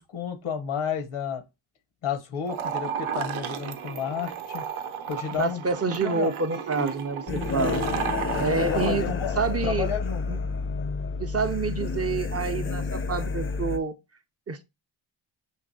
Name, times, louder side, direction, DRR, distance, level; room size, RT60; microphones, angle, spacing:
voice 1, 0.0-1.4 2.0-4.6 5.1-5.6 6.0-6.9 7.8-8.0 8.3-10.2, left 7 dB, 85° left, 0.9 m, -32 dB
sound 1, 2.4-9.0, right 7 dB, 80° right, 0.6 m, -33 dB
voice 2, 5.4-7.8 8.4-9.9 10.3-10.4 11.2-13.9 14.5-14.6, right 4 dB, 30° right, 0.5 m, -28 dB
sound 2, 7.3-13.8, left 4 dB, 30° left, 0.4 m, -29 dB
6.4 x 2.8 x 2.6 m
cardioid pair, 65°, 48 cm